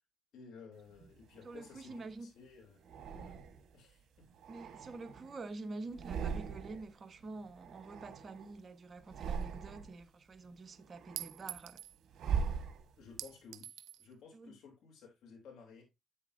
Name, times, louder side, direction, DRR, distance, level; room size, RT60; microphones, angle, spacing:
voice 1, 0.3-3.4 3.7-4.2 4.6-4.9 13.0-15.8, left 5 dB, 75° left, 3.2 m, -56 dB
sound 1, 1.0-2.2 2.8-3.8 4.3-5.5 5.8-7.0 7.2-8.6 9.0-10.0 10.5-13.2, right 6 dB, 70° right, 1.3 m, -41 dB
voice 2, 1.4-2.3 4.5-11.8 14.3-14.5, right 3 dB, 40° right, 1.2 m, -47 dB
Chink clink, 9.4-9.5 11.2-12.0 13.2-14.1, right 13 dB, 90° right, 0.6 m, -45 dB
8.6 x 7.0 x 2.6 m
cardioid pair, 90°, 0 cm